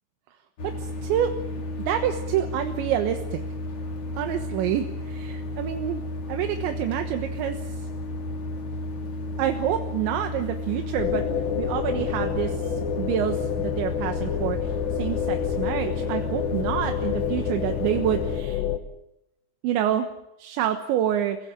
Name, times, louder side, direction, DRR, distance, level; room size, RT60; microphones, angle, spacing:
sound 1, 0.6-18.4, left 1 dB, 35° left, 3.4 m, -33 dB
voice 1, 0.6-1.3 1.9-3.4 4.2-6.0 6.3-7.9 9.4-11.2 11.6-18.6 19.6-20.1 20.4-21.4, right 10 dB, 80° right, 7 dB, 3.6 m, -27 dB
sound 2, 11.0-18.8, left 9 dB, 75° left, 3.6 m, -28 dB
28.0 x 16.5 x 9.0 m, 0.87 s
omnidirectional pair, 5.2 m